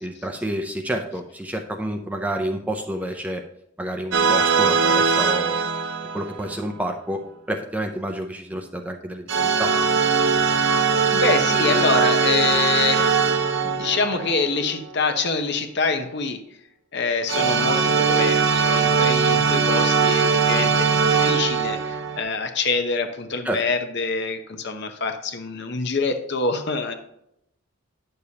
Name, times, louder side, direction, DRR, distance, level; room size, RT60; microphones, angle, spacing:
voice 1, 0.0-3.4 3.8-5.7 6.1-9.3 9.6-9.7 23.4-23.6, right 1 dB, 5° right, 4 dB, 0.5 m, -29 dB
sound 1, 4.1-6.6 9.3-14.9 17.3-22.2, right 5 dB, 55° right, 0.7 m, -20 dB
voice 2, 11.1-16.4 16.9-26.9, left 4 dB, 50° left, 8 dB, 0.8 m, -26 dB
9.4 x 6.7 x 2.8 m, 0.79 s
head